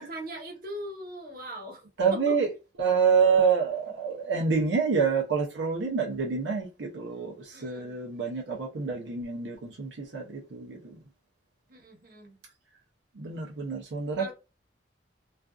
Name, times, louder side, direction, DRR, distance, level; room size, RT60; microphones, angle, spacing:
voice 1, 0.0-1.8 2.1-2.4 7.5-8.0 11.7-12.4 14.2-14.3, right 1 dB, 50° right, 1.0 m, -40 dB
voice 2, 2.0-2.5 2.8-10.9 13.2-14.3, right 5 dB, 85° right, 0.6 m, -27 dB
2.4 x 2.3 x 2.3 m
head